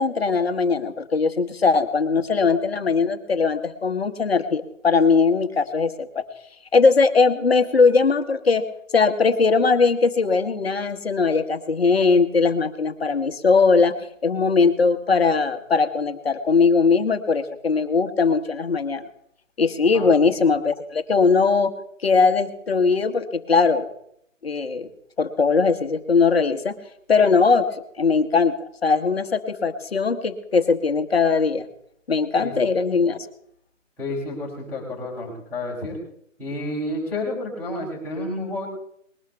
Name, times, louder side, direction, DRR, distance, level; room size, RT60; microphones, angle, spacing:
voice 1, 0.0-6.2 6.7-8.7 8.9-13.9 14.2-19.1 19.6-21.7 22.0-23.8 24.4-24.9 25.2-26.7 27.1-27.7 28.0-28.6 28.8-31.6 32.1-33.2, left 4 dB, 50° left, 8 dB, 1.3 m, -20 dB
voice 2, 19.9-20.3 32.4-32.5 34.0-36.0 36.4-38.7, left 1 dB, 5° left, -8 dB, 3.5 m, -30 dB
20.5 x 12.5 x 3.5 m, 0.70 s
figure-of-eight pair, 155°, 39 cm